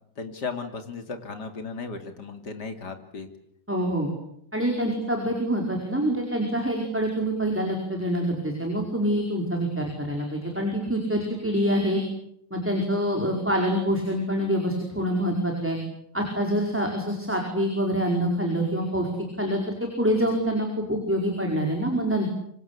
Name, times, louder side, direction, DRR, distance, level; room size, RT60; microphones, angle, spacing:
voice 1, 0.2-3.3, left 4 dB, 65° left, 7 dB, 3.4 m, -35 dB
voice 2, 3.7-4.1 4.5-12.0 12.5-15.8 16.1-19.1 19.4-22.3, equal, 5° right, 1 dB, 4.9 m, -26 dB
26.0 x 25.5 x 8.5 m, 0.74 s
omnidirectional pair, 1.9 m